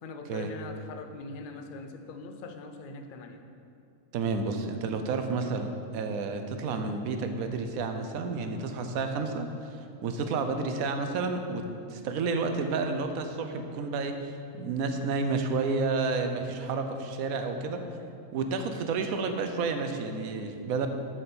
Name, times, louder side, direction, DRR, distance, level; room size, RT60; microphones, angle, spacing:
voice 1, 0.0-3.4, left 3 dB, 55° left, 6 dB, 0.6 m, -42 dB
voice 2, 4.1-9.8 10.0-11.6 11.9-17.8 18.3-20.9, right 4 dB, 85° right, 6 dB, 1.1 m, -30 dB
7.5 x 4.3 x 6.8 m, 2.5 s
omnidirectional pair, 1.4 m